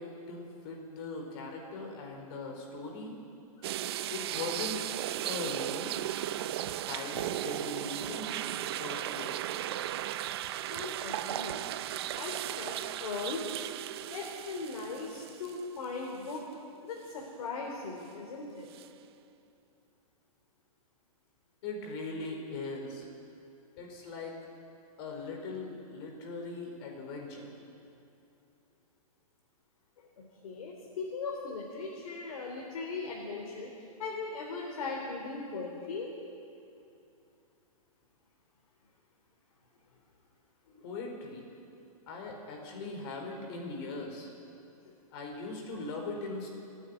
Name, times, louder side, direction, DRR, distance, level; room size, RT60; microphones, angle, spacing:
voice 1, 0.0-3.2 4.1-4.8 5.2-6.1 6.9-9.3 21.6-23.1 23.8-24.4 25.0-27.5 40.7-41.4 42.1-44.3 45.1-46.5, left 3 dB, 45° left, 1 dB, 4.8 m, -40 dB
sound 1, 3.6-15.8 16.3-16.4 18.7-18.9, right 13 dB, 45° right, 0.6 m, -36 dB
voice 2, 10.7-11.6 12.1-13.5 14.1-16.4 16.8-18.7 30.4-33.7 34.0-36.1 44.8-44.9, left 4 dB, 65° left, -2 dB, 3.8 m, -39 dB
29.5 x 10.0 x 9.8 m, 2.7 s
hypercardioid pair, 165°, 19 cm